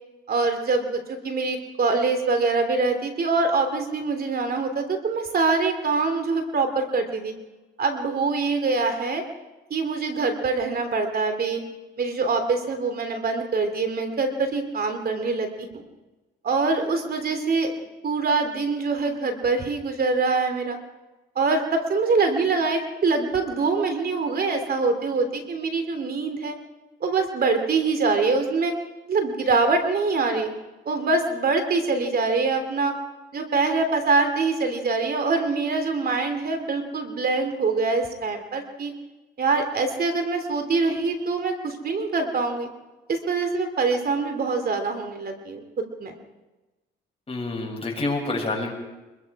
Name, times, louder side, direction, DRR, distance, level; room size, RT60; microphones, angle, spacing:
voice 1, 0.3-7.3 7.8-9.2 9.7-11.6 12.0-15.8 16.4-17.7 18.0-20.8 21.3-26.5 27.0-28.7 29.1-30.5 30.8-32.9 33.3-38.9 39.4-42.7 43.1-46.2, right 4 dB, 50° right, 6 dB, 3.0 m, -24 dB
voice 2, 47.3-48.7, left 2 dB, 30° left, 0 dB, 7.1 m, -27 dB
25.0 x 22.0 x 4.9 m, 1.1 s
cardioid pair, 90°, 20 cm